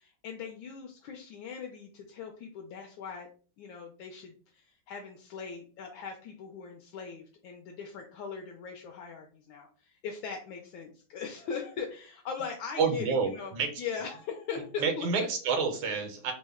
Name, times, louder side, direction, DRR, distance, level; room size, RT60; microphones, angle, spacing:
voice 1, 0.0-3.3 3.6-15.1, left 6 dB, 75° left, 2 dB, 1.2 m, -40 dB
voice 2, 12.8-13.7 14.8-16.3, right 5 dB, 80° right, 5 dB, 1.5 m, -28 dB
3.5 x 2.1 x 3.4 m, 0.41 s
omnidirectional pair, 2.3 m